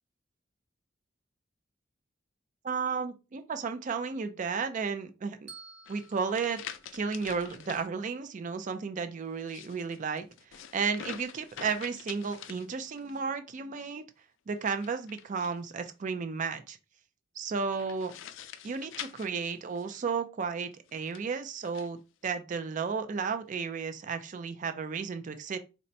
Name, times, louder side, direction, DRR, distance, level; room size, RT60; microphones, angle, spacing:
voice 1, 2.6-5.5 5.9-6.6 6.9-14.0 14.5-16.8 17.4-18.1 18.6-22.0 22.2-25.6, right 5 dB, 45° right, 0.4 m, -33 dB
Bell, 5.5-7.7, right 4 dB, 60° right, 1.1 m, -53 dB
sound 1, 5.9-7.9 9.3-13.2 14.6-15.9 17.7-20.1 20.9-21.9, left 9 dB, 90° left, 0.4 m, -46 dB
4.0 x 2.1 x 2.6 m
head